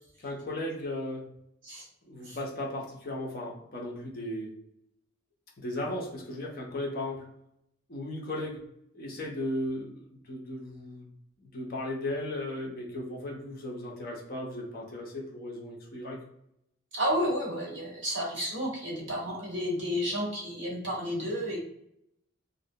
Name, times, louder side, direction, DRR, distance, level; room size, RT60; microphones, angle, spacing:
voice 1, 0.2-1.3 2.0-4.5 5.6-7.3 7.9-8.6 8.9-11.1 11.4-16.2, left 1 dB, 45° left, -1 dB, 0.6 m, -36 dB
voice 2, 16.9-21.6, equal, 55° right, -4 dB, 1.1 m, -31 dB
2.5 x 2.1 x 2.6 m, 0.76 s
head